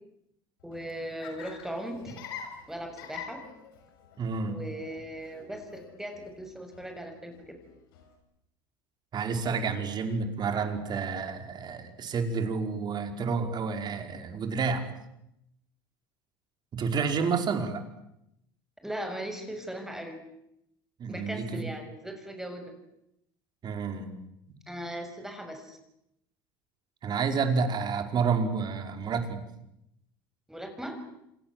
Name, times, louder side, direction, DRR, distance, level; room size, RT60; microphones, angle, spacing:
Laughter, 0.6-8.2, left 7 dB, 80° left, 6.7 m, -47 dB
voice 1, 0.6-2.1 2.7-3.4 4.5-7.5 18.8-20.2 21.1-22.6 24.7-25.8 30.5-31.0, equal, 5° right, 6 dB, 6.6 m, -38 dB
voice 2, 4.2-4.6 9.1-14.8 16.7-17.8 21.0-21.7 23.6-24.2 27.0-29.4, right 5 dB, 40° right, 7 dB, 5.1 m, -29 dB
28.0 x 26.5 x 7.8 m, 0.82 s
hypercardioid pair, 90°, 12 cm